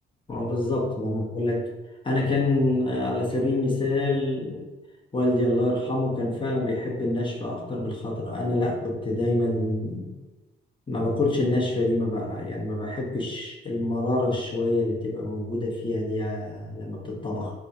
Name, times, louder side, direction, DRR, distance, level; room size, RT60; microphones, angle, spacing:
voice 1, 0.3-1.6 2.0-4.6 5.1-10.1 10.9-17.5, left 2 dB, 25° left, -2 dB, 1.0 m, -26 dB
4.3 x 2.3 x 2.6 m, 1.1 s
cardioid pair, 90°, 20 cm